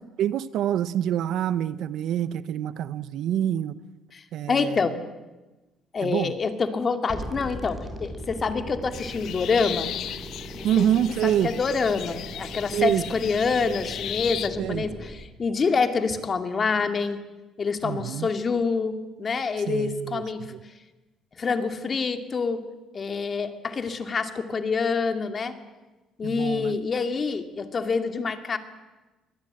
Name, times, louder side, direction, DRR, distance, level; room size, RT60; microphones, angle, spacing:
voice 1, 0.2-3.7 4.3-4.8 6.0-6.3 10.6-11.5 12.7-13.0 14.6-14.9 17.8-18.3 19.7-20.6 26.2-26.8, right 10 dB, 70° right, 16 dB, 0.9 m, -26 dB
voice 2, 4.1-5.0 5.9-9.9 10.5-10.9 11.2-17.2 17.6-20.4 21.4-22.6 22.9-25.6 26.2-28.6, left 5 dB, 40° left, 7 dB, 2.3 m, -26 dB
sound 1, 7.1-15.1, right 1 dB, 15° right, 6.6 m, -39 dB
sound 2, 8.9-14.5, left 11 dB, 70° left, 1.3 m, -36 dB
23.5 x 19.0 x 9.0 m, 1.1 s
cardioid pair, 90°, 0 cm